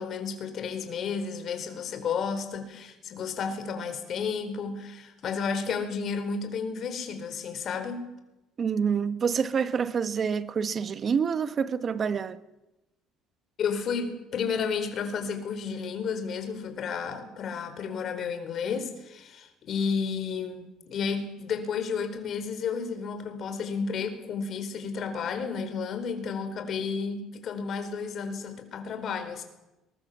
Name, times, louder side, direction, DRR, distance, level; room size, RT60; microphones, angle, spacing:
voice 1, 0.0-8.0 13.6-29.4, left 6 dB, 50° left, 4.4 m, -32 dB
voice 2, 8.6-12.4, right 6 dB, 40° right, 1.3 m, -27 dB
22.0 x 21.0 x 7.4 m
supercardioid pair, 100°, 0 cm